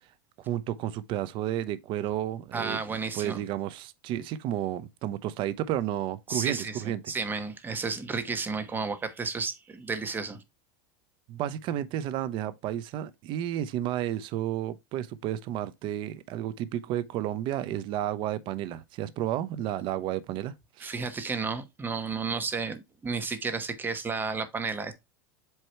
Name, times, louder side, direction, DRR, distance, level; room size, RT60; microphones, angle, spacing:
voice 1, 0.4-2.8 3.1-7.0 11.3-20.9, right 12 dB, 45° right, 0.8 m, -32 dB
voice 2, 2.5-3.4 6.3-10.4 20.8-24.9, right 4 dB, 15° right, 1.1 m, -32 dB
8.0 x 3.0 x 4.3 m
supercardioid pair, 135°, 11 cm